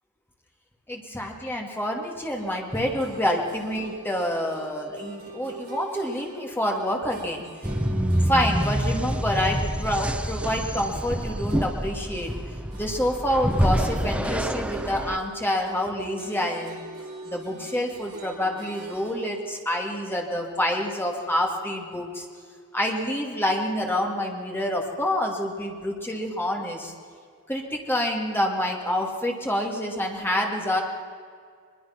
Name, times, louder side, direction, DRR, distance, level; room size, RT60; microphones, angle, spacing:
voice 1, 0.9-7.4 7.9-12.3 12.7-16.8 17.2-22.2 22.7-26.9 27.5-30.8, left 1 dB, 10° left, 0 dB, 2.5 m, -27 dB
sound 1, 2.4-12.0 12.2-19.3, right 1 dB, 45° right, 5.1 m, -44 dB
sound 2, 7.6-15.2, equal, 5° right, 0.7 m, -27 dB
22.5 x 21.5 x 6.0 m, 2.2 s
head